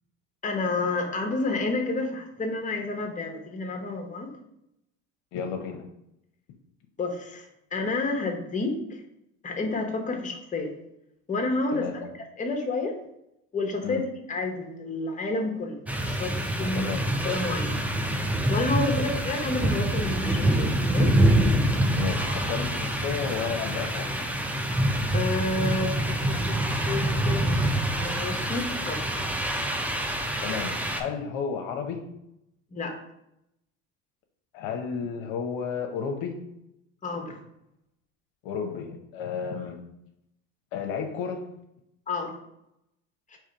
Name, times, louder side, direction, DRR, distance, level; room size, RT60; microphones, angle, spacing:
voice 1, 0.4-4.3 7.0-8.8 9.4-10.7 11.3-12.1 12.4-12.9 13.5-17.0 17.2-17.8 18.5-21.1 25.1-26.6 26.9-27.4 28.0-29.1 32.7-33.0 37.0-37.3 42.1-42.3, left 3 dB, 20° left, 3 dB, 0.9 m, -30 dB
voice 2, 5.3-5.8 11.7-12.0 13.8-14.0 16.7-17.1 18.9-19.0 21.9-24.3 30.4-32.0 34.5-36.4 38.4-39.8 40.7-41.5, left 6 dB, 60° left, 3 dB, 0.7 m, -32 dB
sound 1, 15.9-31.0, right 1 dB, 5° right, 0.4 m, -26 dB
3.6 x 3.1 x 4.5 m, 0.82 s
hypercardioid pair, 80°, 38 cm